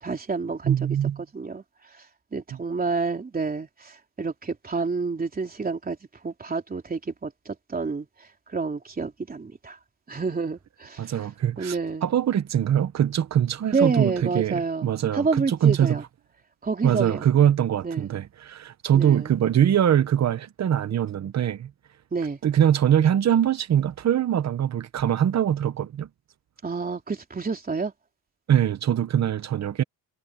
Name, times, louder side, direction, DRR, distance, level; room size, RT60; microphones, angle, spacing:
voice 1, 0.0-1.0 1.3-1.6 2.3-6.0 6.2-8.1 8.5-9.8 10.1-11.1 11.6-12.1 13.7-16.0 16.6-17.2 17.8-18.1 18.9-19.3 22.1-22.4 26.6-27.9, right 4 dB, 20° right, 3.4 m, -28 dB
voice 2, 0.6-1.2 11.0-16.0 16.8-21.7 22.4-26.1 28.5-29.8, right 10 dB, 40° right, 0.8 m, -23 dB
cardioid pair, 170°, 43 cm